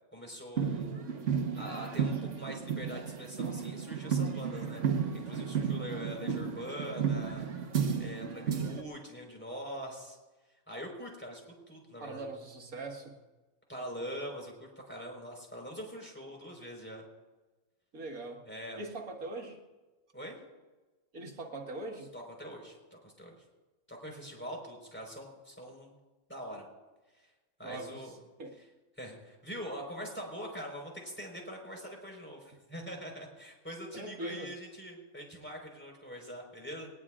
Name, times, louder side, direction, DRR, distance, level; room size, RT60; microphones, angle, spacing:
voice 1, 0.1-1.0 1.5-7.5 8.0-10.2 10.7-12.3 13.7-17.0 18.5-18.8 20.1-20.4 22.1-23.4 23.9-25.9 26.3-26.6 27.1-27.3 27.6-28.1 28.6-28.7 29.0-36.9, equal, 10° left, 0 dB, 4.4 m, -43 dB
sound 1, 0.6-8.8, right 6 dB, 60° right, 1.5 m, -33 dB
voice 2, 12.0-13.2 17.9-18.5 18.8-19.6 21.1-22.1 27.6-28.0 28.4-28.6 33.9-34.5, right 2 dB, 75° right, 1 dB, 2.2 m, -41 dB
20.0 x 20.0 x 2.5 m, 1.2 s
omnidirectional pair, 1.5 m